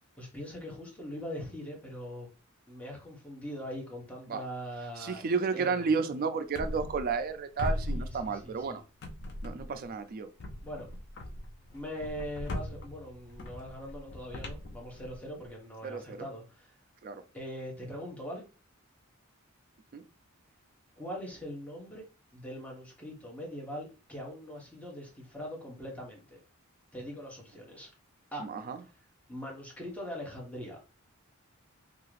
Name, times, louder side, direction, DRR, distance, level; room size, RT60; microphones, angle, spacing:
voice 1, 0.2-2.3 2.7-5.2 5.5-6.0 7.9-8.8 10.6-10.9 11.7-16.8 17.3-18.4 21.0-22.0 22.3-26.4 26.9-27.9 28.3-28.4 28.8-28.9 29.3-30.8, equal, 5° left, 0.9 m, -42 dB
voice 2, 5.0-8.8 9.4-10.3 15.8-16.3 17.0-17.2 19.9-20.0 28.4-28.8, right 5 dB, 45° right, 0.3 m, -32 dB
sound 1, 6.5-7.3 7.6-8.7 9.0-9.8 10.4-15.5, left 1 dB, 50° left, 0.5 m, -39 dB
2.8 x 2.4 x 3.1 m
head